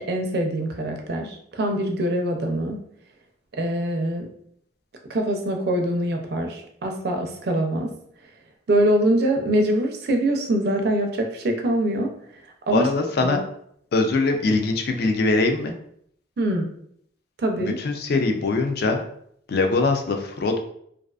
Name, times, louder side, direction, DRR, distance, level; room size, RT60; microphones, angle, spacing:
voice 1, 0.0-2.8 3.6-4.3 5.1-7.9 8.7-12.1 12.7-12.9 13.2-13.4 16.4-16.7 17.4-17.8, right 1 dB, 55° right, 3 dB, 0.4 m, -23 dB
voice 2, 12.7-13.4 13.9-15.7 17.6-19.0 19.5-20.6, left 3 dB, 55° left, 4 dB, 0.4 m, -22 dB
2.4 x 2.3 x 2.3 m, 0.68 s
head